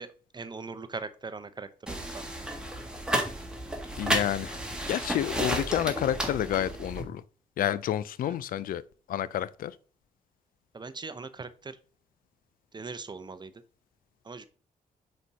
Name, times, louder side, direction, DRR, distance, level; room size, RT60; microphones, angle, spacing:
voice 1, 0.0-2.4 8.2-8.4 10.7-11.8 12.7-13.5 14.2-14.4, right 4 dB, 30° right, 0.7 m, -40 dB
sound 1, 1.9-7.0, right 1 dB, 5° right, 1.7 m, -32 dB
voice 2, 3.9-4.6 4.9-7.2 7.6-8.8 9.1-9.8, left 11 dB, 75° left, 0.4 m, -29 dB
5.1 x 4.3 x 4.7 m
cardioid pair, 70°, 15 cm